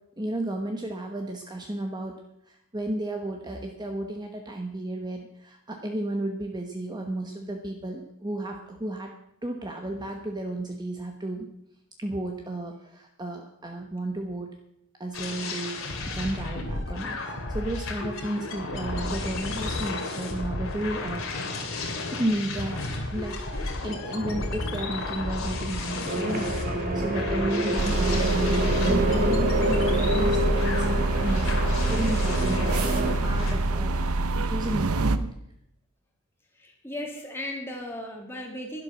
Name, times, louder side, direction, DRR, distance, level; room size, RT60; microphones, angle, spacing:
voice 1, 0.2-2.2 2.5-9.1 9.4-11.5 12.0-14.5 15.0-15.8 16.1-21.2 22.1-32.9 33.2-34.0 34.5-35.3, right 1 dB, 20° right, 2 dB, 1.1 m, -33 dB
sound 1, 15.1-33.5, left 2 dB, 65° left, 2.5 m, -32 dB
sound 2, 26.1-33.2, right 1 dB, 40° right, 1.4 m, -27 dB
sound 3, 27.8-35.2, right 2 dB, 80° right, 0.8 m, -26 dB
voice 2, 36.6-38.8, left 1 dB, 10° left, 0 dB, 1.9 m, -36 dB
11.5 x 11.5 x 6.0 m, 0.76 s
head